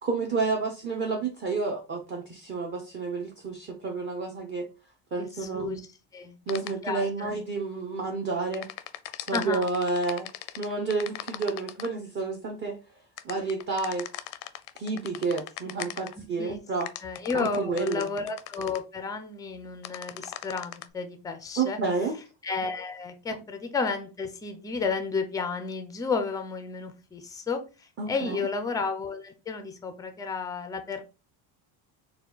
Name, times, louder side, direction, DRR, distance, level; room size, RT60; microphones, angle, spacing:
voice 1, 0.0-4.7 5.1-5.8 6.5-8.7 9.3-10.3 10.6-12.8 13.2-14.0 14.8-16.9 17.3-18.1 21.6-22.2 28.0-28.4, right 4 dB, 25° right, 1 dB, 0.7 m, -30 dB
voice 2, 5.2-5.8 6.1-6.4 6.7-7.3 9.3-9.6 16.2-16.6 17.0-21.8 22.4-31.0, left 4 dB, 10° left, 7 dB, 0.3 m, -32 dB
sound 1, 6.5-6.7 8.5-11.9 13.2-16.1 16.8-18.8 19.8-20.8, left 14 dB, 85° left, 0.6 m, -39 dB
4.4 x 2.2 x 3.9 m, 0.31 s
cardioid pair, 140°, 47 cm